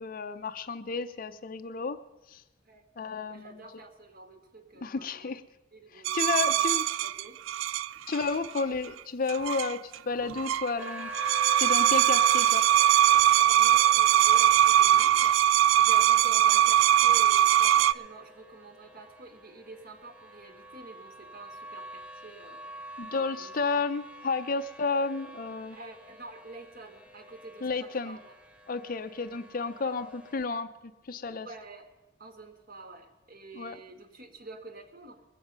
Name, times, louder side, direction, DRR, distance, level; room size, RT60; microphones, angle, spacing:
voice 1, 0.0-2.0 2.3-2.4 3.0-3.5 4.8-5.4 5.9-6.8 8.1-11.1 11.6-12.6 23.0-25.8 27.6-28.2 28.7-31.5 33.5-33.8, left 4 dB, 45° left, 10 dB, 0.5 m, -32 dB
voice 2, 3.3-5.3 5.7-7.4 12.2-12.5 13.5-22.6 23.1-23.5 25.7-28.3 29.6-30.0 31.4-31.9 32.2-35.2, right 3 dB, 50° right, 6 dB, 1.5 m, -48 dB
sound 1, 6.0-8.6 9.3-9.9 10.2-10.7 11.0-17.9, right 11 dB, 85° right, 0.3 m, -21 dB
sound 2, 10.8-30.5, right 1 dB, 5° right, 0.7 m, -45 dB
21.0 x 8.0 x 5.3 m, 1.1 s
head